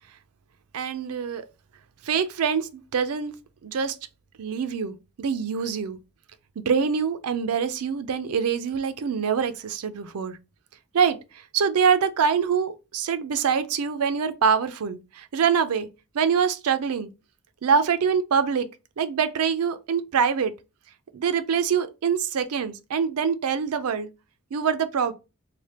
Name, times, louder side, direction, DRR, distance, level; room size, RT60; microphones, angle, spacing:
voice 1, 0.7-1.4 2.0-3.3 3.6-4.0 4.4-6.0 6.7-10.4 10.9-15.9 16.1-17.1 17.6-18.7 19.0-20.5 21.1-24.1 24.5-25.1, right 6 dB, 80° right, 0.4 m, -24 dB
3.3 x 2.1 x 4.1 m
head